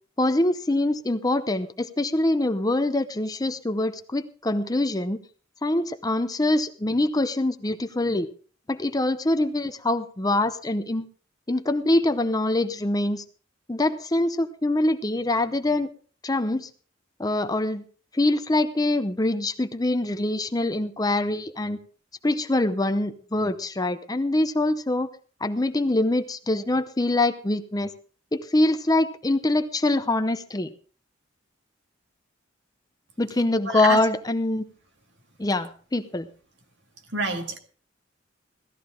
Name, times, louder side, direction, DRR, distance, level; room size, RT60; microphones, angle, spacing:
voice 1, 0.2-5.2 5.6-8.3 8.7-11.0 11.5-13.2 13.7-15.9 16.2-16.7 17.2-17.8 18.1-21.8 22.2-25.1 25.4-27.9 28.3-30.7 33.2-34.6 35.4-36.3, left 2 dB, 20° left, 9 dB, 0.7 m, -24 dB
voice 2, 33.7-34.0 37.1-37.6, right 2 dB, 65° right, 4 dB, 2.1 m, -27 dB
17.0 x 13.5 x 3.7 m, 0.41 s
head